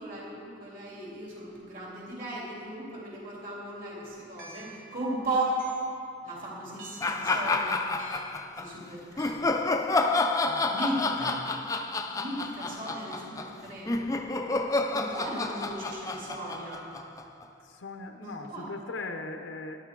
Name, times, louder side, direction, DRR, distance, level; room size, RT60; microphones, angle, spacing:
voice 1, 0.0-5.6 6.2-8.0 8.6-9.4 10.7-11.4 12.1-13.9 14.9-16.9 18.2-18.6, right 1 dB, 45° right, -5 dB, 3.2 m, -36 dB
sound 1, 4.4-4.9 5.6-6.0 6.8-7.2 8.0-8.4 9.2-9.3, right 1 dB, 70° right, 2.1 m, -47 dB
sound 2, 7.0-8.7 9.2-17.4, left 3 dB, 15° left, 0.4 m, -29 dB
voice 2, 10.5-10.8 11.4-11.6 17.6-19.9, left 3 dB, 85° left, 5 dB, 0.7 m, -39 dB
17.5 x 10.5 x 3.8 m, 2.6 s
head